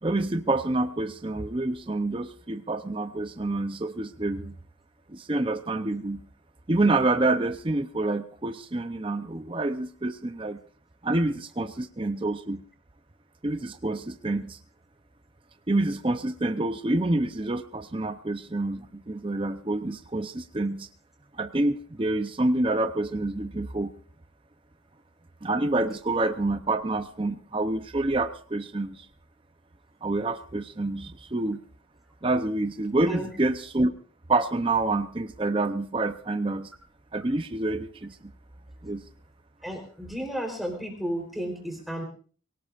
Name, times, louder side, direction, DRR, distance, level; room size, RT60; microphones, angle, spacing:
voice 1, 0.0-4.6 5.1-6.3 6.7-10.6 11.0-12.6 13.4-14.6 15.7-20.9 21.4-23.9 25.4-29.1 30.0-31.6 32.2-33.9 34.3-36.7 37.1-38.3 38.8-39.0, right 2 dB, 25° right, 9 dB, 0.6 m, -27 dB
voice 2, 39.6-42.0, equal, ahead, 1 dB, 3.8 m, -33 dB
23.0 x 18.0 x 2.5 m, 0.42 s
head